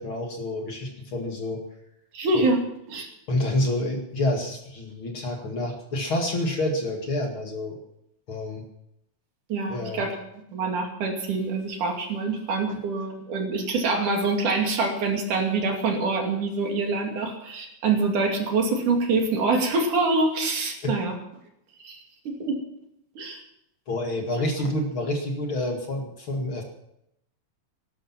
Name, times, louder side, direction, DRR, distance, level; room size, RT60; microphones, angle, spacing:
voice 1, 0.0-1.6 2.3-2.5 3.3-7.8 8.3-8.7 9.7-10.1 12.7-12.8 20.8-20.9 23.9-26.6, left 1 dB, 45° left, 2 dB, 2.6 m, -28 dB
voice 2, 2.1-2.6 2.9-3.1 9.5-10.2 10.5-21.1 21.8-22.0 22.3-22.6 23.2-23.4, right 3 dB, 75° right, 2 dB, 4.2 m, -25 dB
18.0 x 12.0 x 6.0 m, 0.80 s
omnidirectional pair, 3.7 m